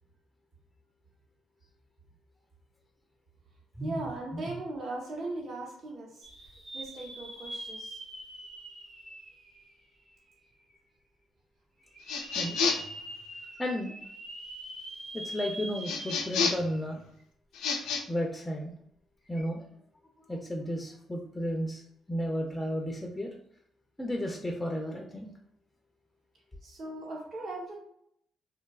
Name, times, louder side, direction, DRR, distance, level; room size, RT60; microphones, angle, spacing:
voice 1, 3.8-6.3 6.7-8.0 26.6-27.8, right 2 dB, 55° right, -3 dB, 0.8 m, -38 dB
sound 1, 6.2-10.2 10.7-10.8 11.9-16.8 17.2-17.3 19.2-19.4, right 1 dB, 80° right, 1.2 m, -43 dB
sound 2, 12.1-13.0 15.8-16.7 17.5-18.0, left 5 dB, 90° left, 0.3 m, -29 dB
voice 2, 13.6-13.9 15.1-17.0 18.1-18.7 19.3-19.7 20.3-21.8 22.1-23.3 24.0-25.3, equal, 10° left, 1 dB, 0.3 m, -33 dB
2.7 x 2.2 x 2.2 m, 0.71 s
cardioid pair, 90°, 0 cm